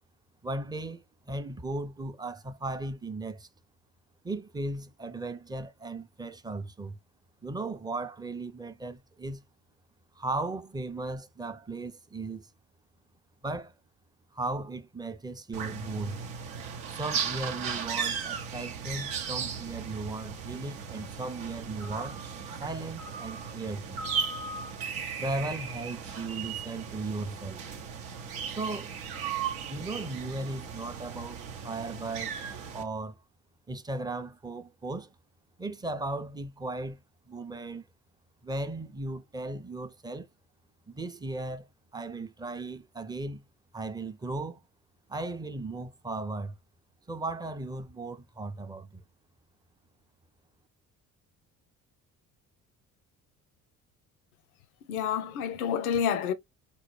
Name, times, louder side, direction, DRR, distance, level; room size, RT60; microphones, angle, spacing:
voice 1, 0.4-3.5 4.2-7.0 7.4-9.4 10.2-12.5 13.4-13.7 14.3-16.2 16.9-22.2 22.6-24.0 25.2-27.7 28.5-28.9 29.7-32.4 32.7-33.2 33.7-35.1 35.6-37.0 37.3-37.9 38.4-40.3 40.9-41.7 41.9-43.4 43.7-44.6 45.1-46.5 47.1-49.0, right 2 dB, 10° right, 0.5 m, -36 dB
sound 1, 15.5-32.8, right 6 dB, 75° right, 0.8 m, -36 dB
voice 2, 54.9-56.3, left 8 dB, 85° left, 0.5 m, -28 dB
4.1 x 2.2 x 3.0 m
hypercardioid pair, 50°, 43 cm